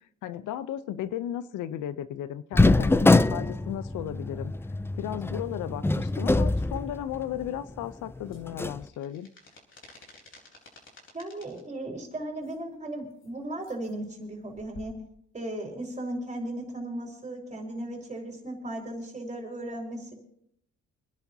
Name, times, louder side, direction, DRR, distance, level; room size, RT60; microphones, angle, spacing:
voice 1, 0.2-4.5 5.0-9.3, left 11 dB, 85° left, 15 dB, 0.7 m, -35 dB
sound 1, 2.5-7.4 7.8-7.9 8.5-8.8, left 2 dB, 10° left, 0.4 m, -24 dB
sound 2, 7.8-11.6 12.4-12.6 13.1-13.3 13.6-13.9 14.5-15.0, left 2 dB, 40° left, 4.0 m, -52 dB
voice 2, 11.1-14.9 15.3-20.1, right 1 dB, 25° right, 0 dB, 4.5 m, -36 dB
29.0 x 10.5 x 2.8 m, 0.69 s
cardioid pair, 90°, 30 cm